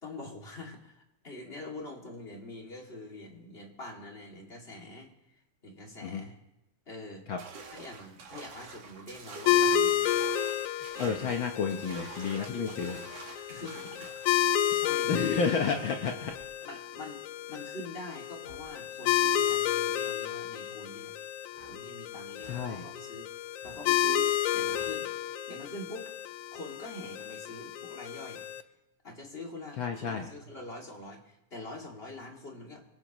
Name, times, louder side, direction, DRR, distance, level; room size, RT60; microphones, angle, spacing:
voice 1, 0.0-6.3 6.9-7.2 7.7-10.1 10.9-11.5 12.4-12.9 13.5-15.4 16.7-17.2 17.5-21.1 21.7-26.1 26.5-28.4 29.0-32.8, left 2 dB, 20° left, 0 dB, 2.3 m, -45 dB
sound 1, 7.4-14.3, right 4 dB, 60° right, 2.8 m, -47 dB
sound 2, 9.5-28.6, left 10 dB, 85° left, 2.1 m, -31 dB
voice 2, 10.8-13.0 15.1-16.3 22.4-22.8 29.8-30.3, left 5 dB, 65° left, 3 dB, 1.2 m, -31 dB
sound 3, 14.4-14.6 16.2-16.5 18.4-18.7 19.4-19.6 21.5-21.8 22.3-22.7 23.6-23.8 24.7-25.0, right 2 dB, 85° right, 5.2 m, -55 dB
25.5 x 16.5 x 3.0 m, 0.91 s
omnidirectional pair, 3.4 m